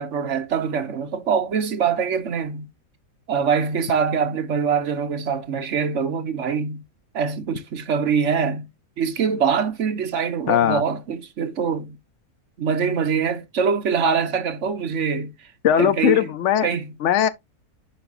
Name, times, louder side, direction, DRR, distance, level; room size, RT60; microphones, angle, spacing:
voice 1, 0.0-2.7 3.3-6.8 7.1-8.7 9.0-12.0 12.6-15.3 15.8-16.3 16.6-16.9, right 6 dB, 55° right, 1.2 m, -24 dB
voice 2, 10.5-10.8 15.6-16.7 17.0-17.3, left 10 dB, 65° left, 0.8 m, -19 dB
11.0 x 4.2 x 2.5 m
omnidirectional pair, 1.6 m